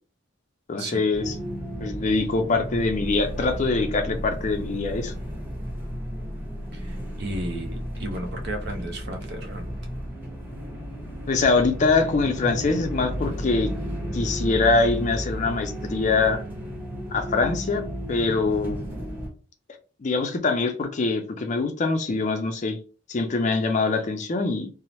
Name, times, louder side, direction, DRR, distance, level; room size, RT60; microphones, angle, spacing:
voice 1, 0.7-1.3 1.8-5.1 11.3-13.7 14.1-16.4 17.1-17.8 18.1-18.8 20.0-22.8 23.1-24.7, left 3 dB, 40° left, 0.4 m, -23 dB
sound 1, 1.1-19.3, equal, 10° right, 1.0 m, -33 dB
voice 2, 6.7-9.8, right 1 dB, 60° right, 0.6 m, -34 dB
2.8 x 2.0 x 2.9 m
head